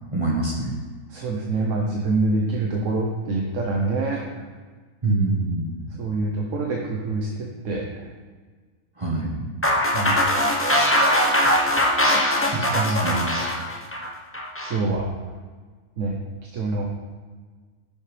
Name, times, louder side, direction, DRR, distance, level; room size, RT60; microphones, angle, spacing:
voice 1, 0.1-0.7 5.0-5.8 9.0-9.5 12.5-13.3, right 2 dB, 25° right, -2 dB, 1.1 m, -25 dB
voice 2, 1.1-4.2 6.0-8.1 9.9-10.2 12.7-13.1 14.7-15.1 16.0-16.1 16.5-16.8, right 3 dB, 60° right, -1 dB, 1.2 m, -25 dB
sound 1, 9.6-14.8, equal, 10° left, 0.7 m, -21 dB
10.5 x 7.1 x 3.3 m, 1.4 s
omnidirectional pair, 1.6 m